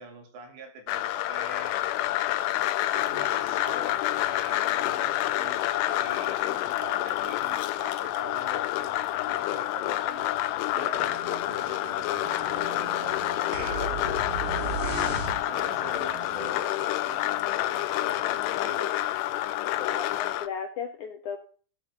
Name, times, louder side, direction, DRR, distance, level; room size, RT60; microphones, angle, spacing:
voice 1, 0.0-1.8 2.9-10.4 10.7-18.9 19.8-20.0, right 3 dB, 90° right, 3 dB, 5.5 m, -45 dB
sound 1, 0.9-20.5, left 14 dB, 85° left, 2.8 m, -28 dB
sound 2, 10.9-16.6, right 10 dB, 65° right, 2.5 m, -46 dB
sound 3, 13.5-15.8, right 4 dB, 40° right, 3.2 m, -34 dB
voice 2, 19.8-21.4, left 6 dB, 65° left, 4 dB, 2.1 m, -35 dB
16.0 x 8.7 x 3.8 m, 0.40 s
omnidirectional pair, 4.8 m